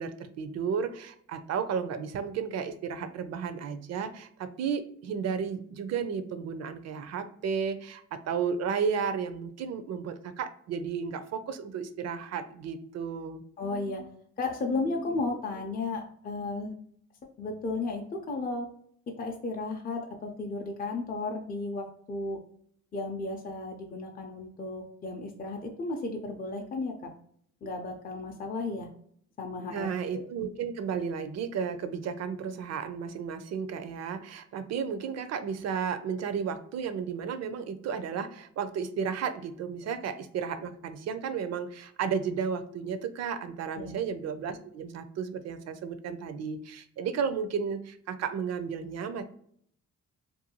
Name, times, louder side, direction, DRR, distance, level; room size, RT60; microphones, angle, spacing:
voice 1, 0.0-13.4 29.7-49.2, right 6 dB, 60° right, 10 dB, 0.4 m, -33 dB
voice 2, 13.6-14.1 14.4-16.7 17.4-18.7 19.2-22.4 22.9-26.9 27.6-28.9 29.4-30.2 43.8-44.0, left 3 dB, 30° left, 1 dB, 0.4 m, -34 dB
2.6 x 2.2 x 2.8 m, 0.63 s
cardioid pair, 90°, 30 cm